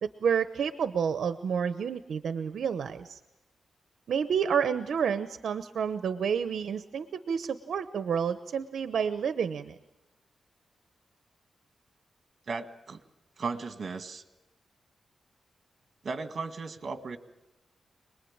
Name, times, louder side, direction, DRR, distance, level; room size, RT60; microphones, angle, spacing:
voice 1, 0.0-3.2 4.1-9.7, right 7 dB, 80° right, 11 dB, 0.9 m, -29 dB
voice 2, 12.5-13.0 13.4-14.2 16.0-17.2, right 4 dB, 50° right, 9 dB, 1.8 m, -36 dB
26.5 x 20.5 x 8.8 m, 0.95 s
wide cardioid pair, 125°, 0 cm